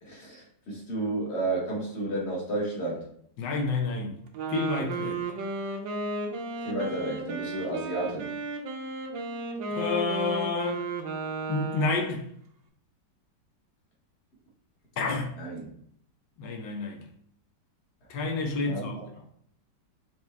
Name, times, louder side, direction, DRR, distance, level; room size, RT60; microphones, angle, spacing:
voice 1, 0.0-3.1 6.6-8.3 15.4-15.7 18.6-19.1, right 2 dB, 40° left, 1.3 m, -32 dB
voice 2, 3.4-4.2 4.5-5.2 9.7-10.9 11.5-12.3 15.0-15.4 16.4-17.0 18.1-19.0, left 3 dB, 75° left, 1.4 m, -29 dB
Wind instrument woodwind instrument, 4.3-12.2, right 2 dB, 85° right, 1.4 m, -34 dB
4.7 x 2.9 x 3.2 m
omnidirectional pair, 1.9 m